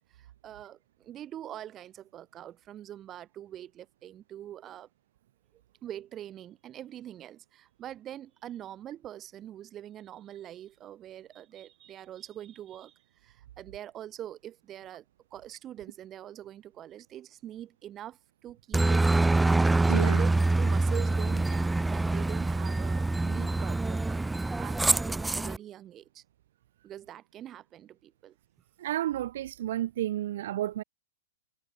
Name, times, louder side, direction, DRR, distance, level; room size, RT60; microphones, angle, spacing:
voice 1, 0.1-4.9 5.8-15.0 15.3-19.5 19.9-20.3 20.6-26.2 26.8-28.3, right 11 dB, 20° right, 4.4 m, -44 dB
Aircraft, 18.7-25.6, right 2 dB, 5° right, 1.0 m, -25 dB
voice 2, 19.9-20.2 28.8-30.8, right 13 dB, 60° right, 1.3 m, -31 dB
hypercardioid pair, 160°, 0 cm